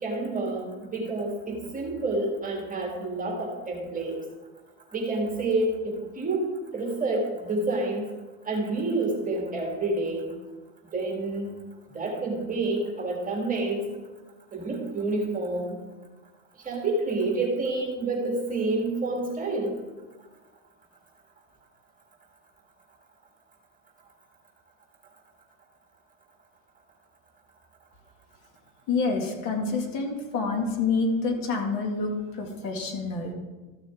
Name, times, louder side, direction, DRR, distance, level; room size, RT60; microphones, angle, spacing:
voice 1, 0.0-4.2 4.9-6.5 6.7-8.1 8.4-10.3 10.9-11.6 11.9-13.8 14.5-15.8 16.6-19.7, right 2 dB, 20° right, 0 dB, 1.8 m, -28 dB
voice 2, 28.9-33.3, left 4 dB, 50° left, 2 dB, 2.2 m, -27 dB
13.5 x 6.6 x 3.6 m, 1.2 s
supercardioid pair, 105°, 42 cm